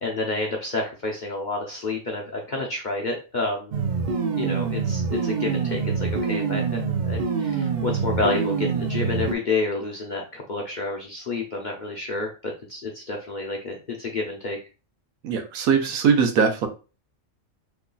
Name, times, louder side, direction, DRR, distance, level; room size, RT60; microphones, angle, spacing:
voice 1, 0.0-3.7 4.4-14.6, left 3 dB, 50° left, -1 dB, 0.5 m, -29 dB
sound 1, 3.7-9.3, right 5 dB, 65° right, 0.4 m, -25 dB
voice 2, 15.2-16.7, right 6 dB, 85° right, 5 dB, 1.1 m, -21 dB
3.2 x 2.2 x 3.8 m, 0.33 s
omnidirectional pair, 1.5 m